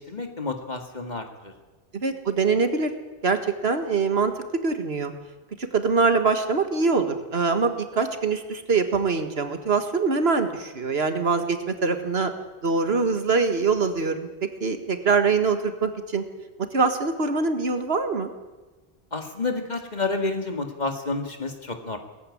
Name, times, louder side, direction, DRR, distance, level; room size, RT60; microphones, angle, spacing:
voice 1, 0.0-1.5 19.1-22.0, left 3 dB, 45° left, 5 dB, 2.1 m, -30 dB
voice 2, 1.9-2.9 3.2-5.1 5.7-12.3 12.6-16.2 16.7-18.3, right 4 dB, 80° right, 8 dB, 1.9 m, -24 dB
19.0 x 15.0 x 9.8 m, 1.2 s
omnidirectional pair, 1.0 m